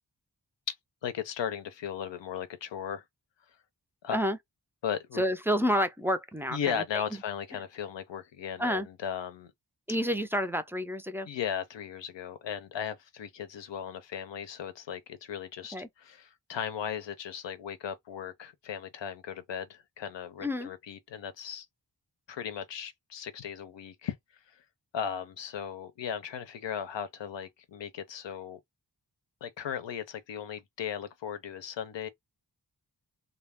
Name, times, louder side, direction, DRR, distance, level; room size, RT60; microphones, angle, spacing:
voice 1, 1.0-3.0 4.0-4.2 4.8-5.2 6.5-9.5 11.3-21.7 22.3-24.2 24.5-24.6 24.9-28.6 29.4-32.1, left 8 dB, 90° left, 0.6 m, -37 dB
voice 2, 5.2-7.0 8.6-8.9 9.9-11.3 15.7-15.9 20.4-20.7, equal, 5° right, 0.3 m, -29 dB
2.3 x 2.0 x 3.4 m
wide cardioid pair, 65°, 42 cm